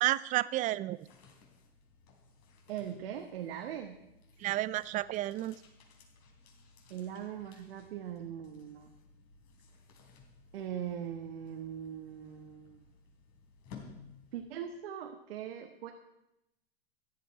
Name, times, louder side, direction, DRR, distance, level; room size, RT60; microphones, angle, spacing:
voice 1, 0.0-1.0 4.4-5.6, right 15 dB, 25° right, 19 dB, 0.4 m, -31 dB
sound 1, 0.7-14.8, left 5 dB, 50° left, 3.7 m, -57 dB
voice 2, 2.7-4.0 6.9-8.9 10.5-12.8 14.3-15.9, right 9 dB, 70° right, 4 dB, 1.4 m, -40 dB
14.5 x 11.0 x 4.9 m, 0.88 s
hypercardioid pair, 110°, 31 cm